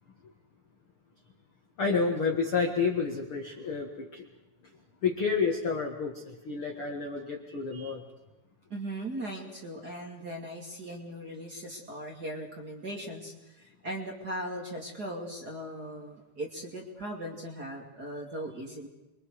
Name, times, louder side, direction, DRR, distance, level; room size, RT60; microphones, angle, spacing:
voice 1, 1.8-4.2 5.0-8.0, left 5 dB, 50° left, 1 dB, 1.7 m, -30 dB
voice 2, 8.7-18.9, right 1 dB, 25° right, 0 dB, 2.5 m, -39 dB
29.5 x 23.5 x 4.9 m, 1.0 s
omnidirectional pair, 5.1 m